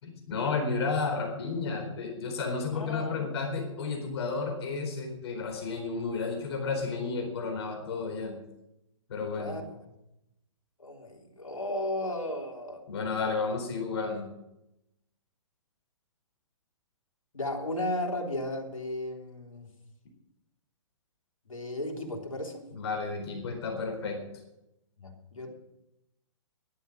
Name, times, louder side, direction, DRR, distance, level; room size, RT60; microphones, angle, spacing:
voice 1, 0.0-8.4 9.1-9.6 12.9-14.2 22.7-24.2, left 4 dB, 50° left, 3 dB, 4.2 m, -32 dB
voice 2, 2.7-3.2 9.4-9.6 10.8-12.8 17.3-19.7 21.5-22.7 25.0-25.5, left 1 dB, 85° left, 1 dB, 3.5 m, -34 dB
14.5 x 11.5 x 6.3 m, 0.86 s
figure-of-eight pair, 125°, 17 cm